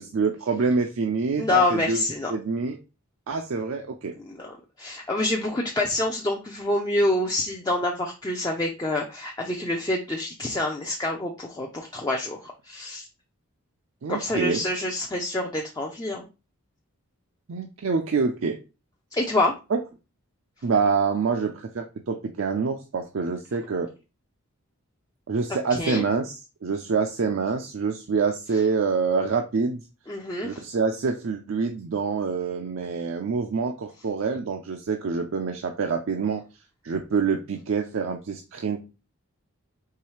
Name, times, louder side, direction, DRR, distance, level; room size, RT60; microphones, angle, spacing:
voice 1, 0.0-2.0 2.3-2.8 3.3-4.1 14.0-14.6 17.5-18.6 19.7-19.8 20.6-23.9 25.3-26.4 26.6-29.8 30.4-36.4 36.8-38.8, right 5 dB, 60° right, 3 dB, 0.4 m, -26 dB
voice 2, 1.4-2.3 4.2-13.1 14.1-16.3 19.1-19.5 25.5-26.0 30.1-30.6, left 2 dB, 15° left, 0 dB, 0.4 m, -27 dB
4.7 x 3.2 x 3.1 m, 0.29 s
head